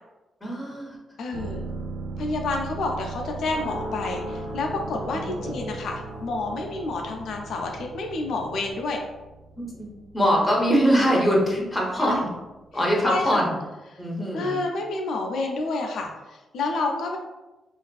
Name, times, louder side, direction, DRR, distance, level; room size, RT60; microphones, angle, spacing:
voice 1, 0.4-1.0 5.1-5.7 9.7-12.2 12.7-13.5 14.0-14.6, equal, 5° left, -3 dB, 0.6 m, -23 dB
voice 2, 1.2-1.6 2.2-9.0 12.0-12.2 13.0-13.4 13.9-14.0 14.3-17.2, left 3 dB, 75° left, 2 dB, 0.3 m, -29 dB
sound 1, 1.3-12.9 13.2-13.3, right 4 dB, 85° right, 0.3 m, -40 dB
sound 2, 3.2-8.7, right 1 dB, 55° right, 0.7 m, -38 dB
2.4 x 2.4 x 2.2 m, 1.1 s
cardioid pair, 120°, 0 cm